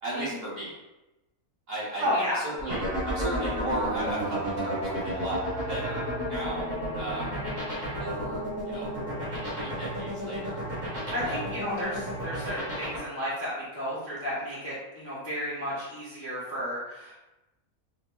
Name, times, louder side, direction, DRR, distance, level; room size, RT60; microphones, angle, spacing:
voice 1, 0.0-0.7 1.7-5.4 5.7-6.7 6.9-7.3 8.0-8.9 9.5-10.6 11.2-11.4, right 1 dB, 45° right, -7 dB, 1.0 m, -35 dB
voice 2, 2.0-2.4 7.2-7.4 11.1-17.2, equal, 15° left, -8 dB, 0.5 m, -32 dB
sound 1, 2.6-13.0, equal, 30° right, 1.1 m, -32 dB
4.3 x 2.0 x 2.2 m, 0.98 s
omnidirectional pair, 1.5 m